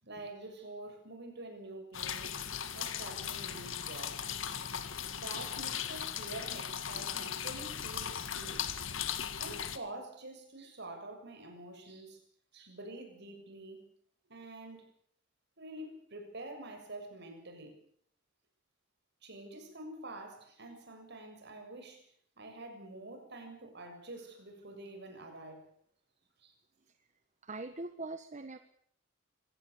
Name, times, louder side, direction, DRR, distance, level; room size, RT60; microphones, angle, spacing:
voice 1, 0.0-2.4 2.7-4.2 5.1-8.8 9.4-12.2 12.5-13.8 14.3-14.9 15.6-17.8 19.2-22.1 22.4-25.7 26.4-26.5, right 2 dB, 60° right, 6 dB, 6.9 m, -47 dB
sound 1, 1.9-9.8, left 8 dB, 75° left, 2.0 m, -38 dB
voice 2, 27.4-28.6, right 2 dB, 35° right, 9 dB, 1.3 m, -41 dB
25.5 x 17.0 x 8.4 m, 0.64 s
head